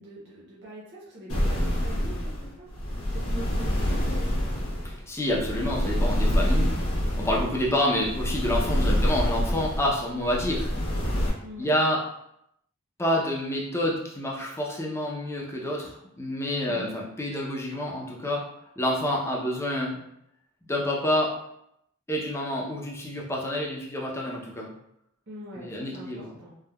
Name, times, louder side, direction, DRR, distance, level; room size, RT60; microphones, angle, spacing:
voice 1, 0.0-4.7 8.9-9.1 11.4-11.7 16.7-16.9 25.3-26.6, right 1 dB, 50° right, -6 dB, 0.7 m, -43 dB
sound 1, 1.3-11.3, equal, 85° left, 1.0 m, -27 dB
voice 2, 4.8-6.7 7.2-10.7 11.6-12.0 13.0-18.4 18.8-20.0 20.7-21.3 22.1-24.7 25.6-26.3, left 1 dB, 10° left, -3 dB, 0.5 m, -28 dB
3.4 x 2.1 x 2.2 m, 0.77 s
head